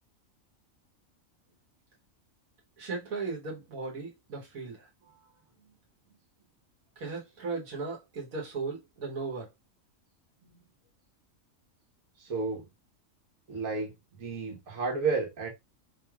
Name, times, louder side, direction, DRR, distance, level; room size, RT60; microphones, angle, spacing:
voice 1, 2.8-4.9 7.0-9.5, right 4 dB, 90° right, 1.6 m, -37 dB
voice 2, 12.2-12.7 13.5-13.9 14.2-15.5, right 4 dB, 70° right, 1.6 m, -32 dB
4.3 x 3.2 x 2.3 m
omnidirectional pair, 1.4 m